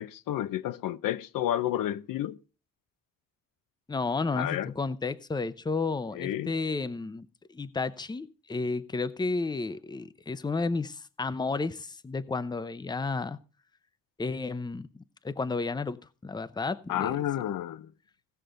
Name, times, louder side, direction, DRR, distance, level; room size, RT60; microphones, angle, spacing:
voice 1, 0.0-2.4 4.4-4.7 6.1-6.5 16.9-17.9, left 12 dB, 80° left, 0.7 m, -30 dB
voice 2, 3.9-7.3 7.5-13.4 14.2-17.2, left 3 dB, 15° left, 0.6 m, -32 dB
17.0 x 6.6 x 3.8 m
cardioid pair, 100°, 33 cm